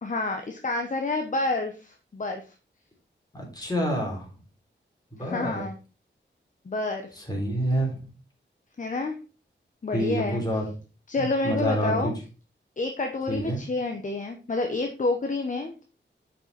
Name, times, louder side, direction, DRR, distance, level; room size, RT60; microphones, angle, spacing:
voice 1, 0.0-2.5 5.2-5.8 6.6-7.1 8.8-9.2 9.8-10.4 11.1-12.1 12.8-15.8, left 2 dB, 40° left, 5 dB, 0.9 m, -29 dB
voice 2, 3.3-4.3 5.1-5.6 7.2-8.0 9.9-10.6 11.2-12.1 13.3-13.6, equal, 20° left, -1 dB, 3.4 m, -28 dB
6.8 x 5.6 x 4.0 m, 0.34 s
wide cardioid pair, 95°, 20 cm